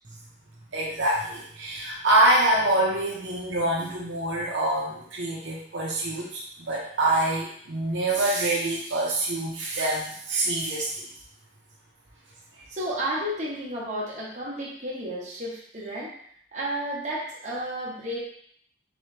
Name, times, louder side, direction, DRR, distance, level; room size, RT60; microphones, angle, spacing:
voice 1, 0.7-6.4 6.7-11.1, right 1 dB, 70° right, -4 dB, 0.8 m, -25 dB
voice 2, 12.7-16.1 16.5-18.2, right 1 dB, 40° right, -5 dB, 1.0 m, -32 dB
4.0 x 3.1 x 3.2 m, 0.63 s
head